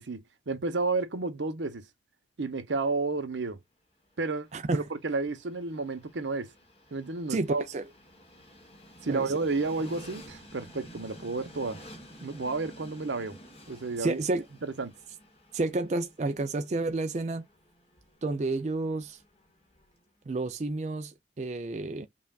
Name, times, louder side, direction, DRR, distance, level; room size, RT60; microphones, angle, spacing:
voice 1, 0.0-1.8 2.4-3.6 4.2-6.5 6.9-7.6 9.0-11.8 12.2-13.4 13.7-14.2 14.6-14.9, right 3 dB, 80° right, 0.8 m, -31 dB
Train, 4.0-20.1, equal, 30° left, 1.2 m, -52 dB
voice 2, 4.5-4.8 7.3-7.8 9.1-9.3 14.0-14.4 15.5-17.5 18.2-19.2 20.3-22.1, right 2 dB, 40° right, 0.4 m, -30 dB
5.6 x 2.4 x 2.3 m
head